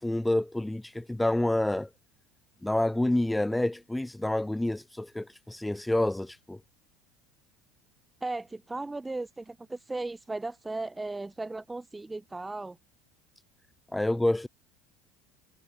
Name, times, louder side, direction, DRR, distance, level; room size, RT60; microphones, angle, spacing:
voice 1, 0.0-1.9 2.6-6.6 13.9-14.5, left 1 dB, 5° left, 0.4 m, -28 dB
voice 2, 8.2-12.8, right 2 dB, 10° right, 0.9 m, -36 dB
figure-of-eight pair, 70°, 0 cm